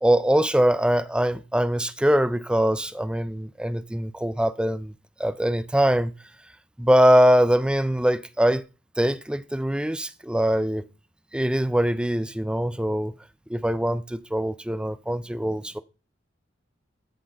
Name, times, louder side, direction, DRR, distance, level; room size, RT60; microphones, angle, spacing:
voice 1, 0.0-4.9 5.2-6.1 6.8-8.6 9.0-10.9 11.3-13.1 13.5-15.8, equal, 5° right, 0.4 m, -22 dB
13.0 x 6.1 x 3.8 m
head